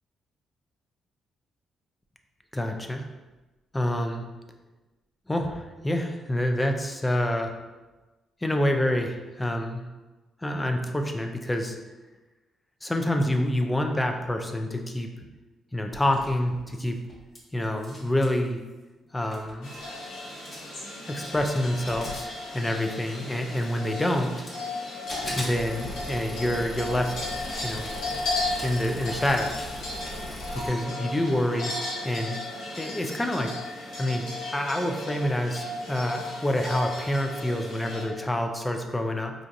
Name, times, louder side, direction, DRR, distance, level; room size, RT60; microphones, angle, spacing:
voice 1, 2.5-3.0 3.7-4.3 5.3-7.5 8.4-9.8 10.4-11.8 12.8-15.1 15.7-17.0 17.5-18.6 19.1-19.7 21.1-24.5 25.4-27.4 27.6-27.9 28.6-29.7 30.6-31.8 32.0-32.4 32.8-33.5 34.0-39.3, left 1 dB, 15° left, 4 dB, 0.5 m, -27 dB
sound 1, 15.9-17.4 17.6-18.4 19.0-19.1 19.3-19.9 20.3-20.8 21.2-23.0 23.6-24.7 25.1-30.7, left 1 dB, 35° left, 1.1 m, -39 dB
sound 2, 19.6-38.1, left 2 dB, 80° left, 1.1 m, -35 dB
4.5 x 2.5 x 2.5 m, 1.1 s
supercardioid pair, 65°, 0 cm